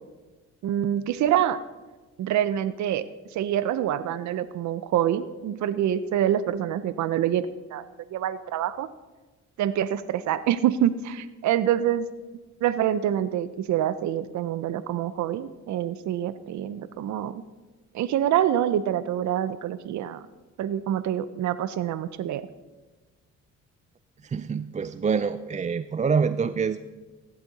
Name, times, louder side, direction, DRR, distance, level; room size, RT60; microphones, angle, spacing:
voice 1, 0.6-1.6 2.2-3.0 3.3-7.8 8.1-8.9 9.6-12.1 12.6-17.4 17.9-20.2 20.6-22.4, right 11 dB, 70° right, 14 dB, 0.6 m, -26 dB
voice 2, 24.2-26.8, right 6 dB, 25° right, 12 dB, 0.4 m, -26 dB
15.5 x 12.0 x 4.1 m, 1.3 s
cardioid pair, 90°, 30 cm